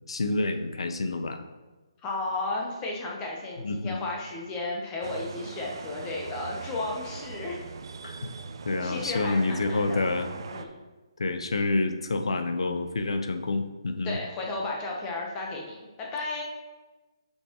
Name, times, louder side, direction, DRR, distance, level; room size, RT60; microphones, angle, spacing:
voice 1, 0.1-1.4 3.6-4.0 8.0-8.3 8.6-10.3 11.2-14.2, left 3 dB, 75° left, 8 dB, 0.8 m, -28 dB
voice 2, 2.0-7.6 8.8-10.0 10.5-10.7 14.0-16.4, left 2 dB, 20° left, -1 dB, 1.0 m, -34 dB
sound 1, 5.0-10.7, right 5 dB, 55° right, 0.6 m, -40 dB
8.1 x 5.7 x 3.0 m, 1.2 s
hypercardioid pair, 155°, 3 cm